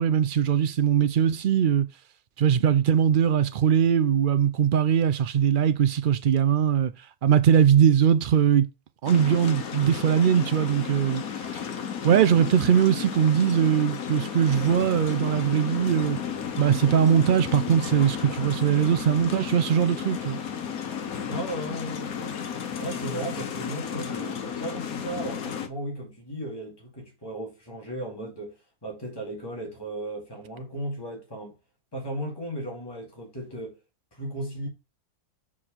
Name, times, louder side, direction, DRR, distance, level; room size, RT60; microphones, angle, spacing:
voice 1, 0.0-1.9 2.4-6.9 7.2-8.7 9.0-11.2 12.0-16.2 16.6-20.4, right 8 dB, 65° right, 0.5 m, -21 dB
sound 1, 9.0-25.7, left 7 dB, 90° left, 1.5 m, -33 dB
voice 2, 21.3-22.4 22.8-31.5 31.9-33.8 34.1-34.7, right 1 dB, 15° left, 2.4 m, -36 dB
6.2 x 4.9 x 5.6 m
omnidirectional pair, 1.5 m